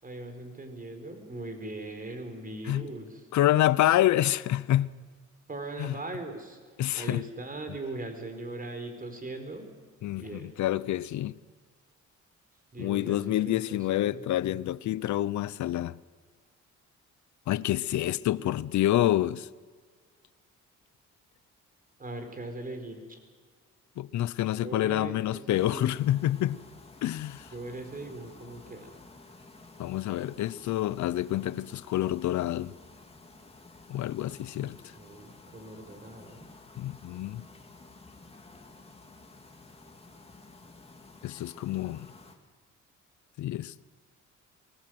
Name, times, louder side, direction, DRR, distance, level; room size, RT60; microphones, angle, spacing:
voice 1, 0.0-3.2 5.5-6.6 6.9-9.7 10.2-10.5 12.7-14.2 18.0-18.2 22.0-23.0 24.6-26.0 27.5-28.9 34.6-36.5, right 2 dB, 30° right, 4.7 m, -40 dB
voice 2, 3.3-4.9 5.8-5.9 6.8-7.2 10.0-11.4 12.8-16.0 17.5-19.5 24.0-26.6 27.0-27.5 29.8-32.8 33.9-34.8 36.8-37.5 41.2-42.1 43.4-43.8, left 13 dB, 70° left, 0.7 m, -27 dB
sound 1, 25.5-42.4, left 3 dB, 20° left, 2.8 m, -52 dB
23.5 x 20.0 x 7.8 m
cardioid pair, 90°, 30 cm